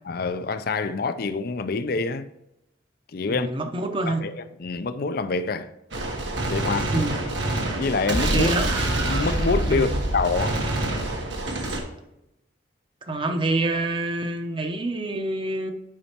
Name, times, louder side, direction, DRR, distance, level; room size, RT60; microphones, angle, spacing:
voice 1, 0.1-2.3 3.1-3.5 4.1-5.7 6.5-6.9 7.8-8.5 9.0-10.6, left 4 dB, 55° left, 0.5 m, -26 dB
voice 2, 3.3-4.2 6.9-7.2 8.3-8.7 9.7-10.0 13.0-15.7, right 2 dB, 25° right, 0.8 m, -26 dB
Gunshot gunfire, 5.9-11.8, right 1 dB, 80° right, 1.6 m, -26 dB
9.9 x 5.4 x 3.0 m
head